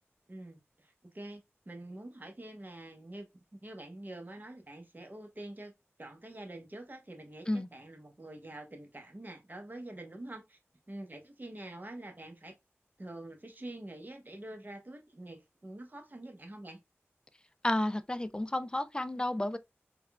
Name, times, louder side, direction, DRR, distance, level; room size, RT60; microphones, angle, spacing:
voice 1, 0.3-5.7 6.0-10.6 10.9-12.5 13.0-16.8, right 1 dB, 40° right, 0.9 m, -46 dB
voice 2, 17.6-19.6, left 1 dB, 20° left, 0.3 m, -31 dB
3.5 x 2.2 x 2.3 m
wide cardioid pair, 40°, 5 cm